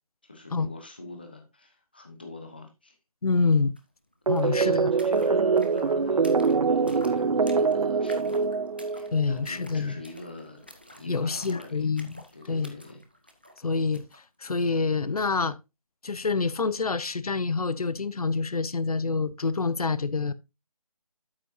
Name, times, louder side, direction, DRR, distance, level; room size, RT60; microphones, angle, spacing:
voice 1, 0.2-3.0 4.4-8.5 8.9-10.7 11.0-11.9 12.3-13.0, left 2 dB, 15° left, 0.7 m, -44 dB
voice 2, 3.2-3.7 4.3-4.9 9.1-10.0 11.1-12.1 12.5-12.7 13.6-14.0 14.4-15.6 16.0-20.3, left 4 dB, 80° left, 0.8 m, -26 dB
sound 1, 3.8-3.9 4.1-14.3, left 1 dB, 15° right, 0.5 m, -51 dB
sound 2, 4.3-9.4, right 5 dB, 80° right, 0.5 m, -24 dB
8.5 x 8.1 x 2.6 m
figure-of-eight pair, 180°, 19 cm